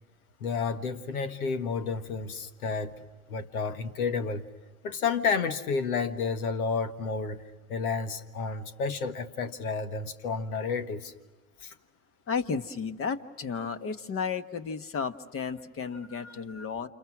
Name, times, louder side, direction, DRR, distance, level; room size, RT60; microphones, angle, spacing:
voice 1, 0.4-3.0 3.3-4.4 4.8-7.4 7.7-11.1 11.6-11.7 16.1-16.7, left 5 dB, 90° left, 1.6 m, -31 dB
voice 2, 12.3-16.9, left 5 dB, 30° left, 1.3 m, -33 dB
29.5 x 27.5 x 6.1 m
hypercardioid pair, 100°, 42 cm